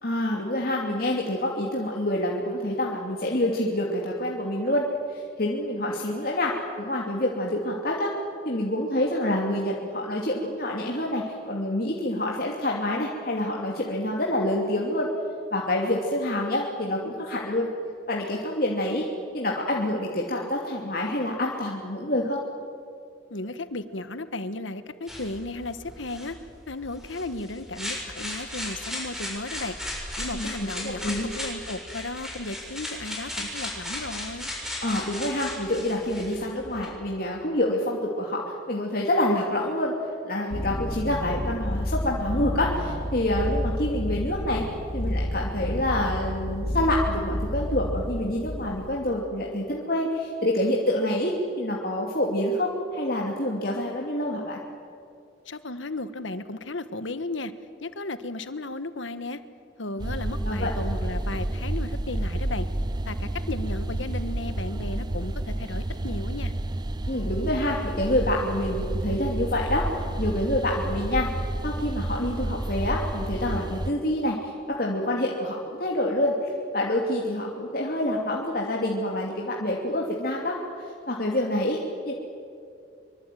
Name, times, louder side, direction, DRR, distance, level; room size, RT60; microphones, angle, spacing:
voice 1, 0.0-8.1 8.4-15.1 15.5-17.7 18.1-19.1 19.3-22.4 30.3-31.3 34.8-39.9 40.2-44.6 44.9-54.6 60.4-60.7 67.1-71.3 71.6-81.8 82.0-82.1, left 1 dB, 50° left, -2 dB, 2.7 m, -27 dB
voice 2, 23.3-26.4 26.7-29.8 30.2-34.5 55.4-57.5 57.8-59.4 59.8-62.7 63.0-66.5, left 2 dB, 85° left, 11 dB, 1.5 m, -35 dB
sound 1, 25.1-36.9, left 1 dB, ahead, 6.9 m, -36 dB
sound 2, 40.5-49.0, equal, 30° left, 2.2 m, -30 dB
sound 3, 60.0-73.9, right 1 dB, 20° right, 0.6 m, -30 dB
25.0 x 24.5 x 9.4 m, 2.4 s
head